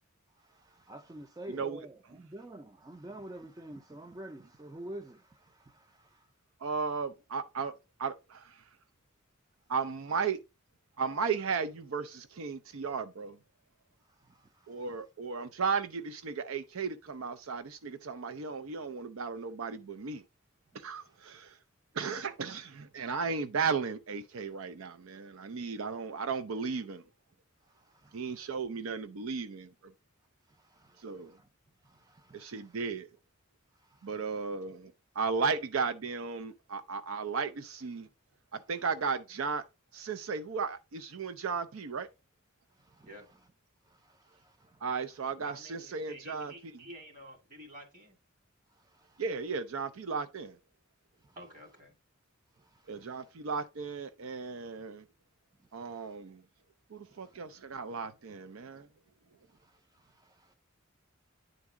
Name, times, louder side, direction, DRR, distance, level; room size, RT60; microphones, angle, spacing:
voice 1, 0.4-1.9 2.2-6.3 14.1-14.8 21.0-21.1 27.7-28.5 30.5-31.5 31.8-32.8 33.8-34.2 42.8-43.1 43.9-44.8 48.8-49.2 51.2-51.4 52.6-53.3 55.8-56.1 57.2-57.3 59.6-60.5, right 1 dB, 20° right, 0.4 m, -50 dB
voice 2, 1.5-1.8 6.6-7.7 8.0-8.6 9.7-10.4 11.0-13.4 14.7-20.2 20.7-21.6 21.9-27.0 28.1-29.9 31.0-31.3 32.3-33.1 34.0-38.1 38.5-39.6 39.9-42.1 44.8-46.5 49.2-50.6 52.9-55.0 55.7-56.4 56.9-58.9, right 5 dB, 80° right, 0.5 m, -35 dB
voice 3, 45.4-48.2 51.4-51.9, right 1 dB, 40° right, 2.3 m, -50 dB
9.6 x 4.0 x 3.6 m
head